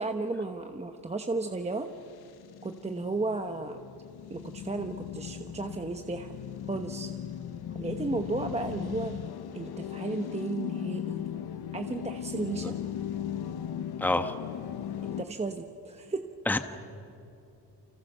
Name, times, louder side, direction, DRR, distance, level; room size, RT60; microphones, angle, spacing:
voice 1, 0.0-1.9 2.6-3.8 4.3-6.3 6.7-7.1 7.7-9.2 9.5-11.2 11.7-12.7 15.2-16.2, right 3 dB, 15° right, 5 dB, 1.1 m, -34 dB
sound 1, 1.9-15.2, left 10 dB, 75° left, 1.1 m, -38 dB
voice 2, 14.0-14.3 16.5-16.6, left 2 dB, 5° left, 8 dB, 1.2 m, -26 dB
29.5 x 26.0 x 6.7 m, 2.7 s
cardioid pair, 125°, 39 cm